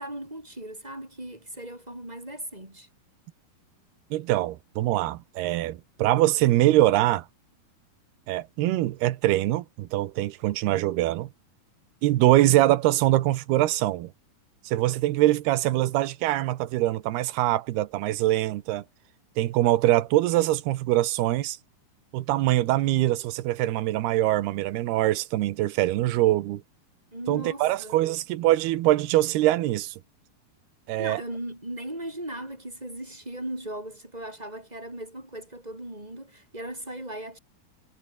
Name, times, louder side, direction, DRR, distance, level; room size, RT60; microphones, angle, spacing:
voice 1, 0.0-2.9 27.1-28.0 31.0-37.4, right 1 dB, 10° right, 5.6 m, -38 dB
voice 2, 4.1-7.3 8.3-11.3 12.0-14.1 14.7-18.8 19.4-21.6 22.1-26.6 27.3-30.0 30.9-31.2, right 15 dB, 75° right, 3.0 m, -23 dB
omnidirectional pair, 4.7 m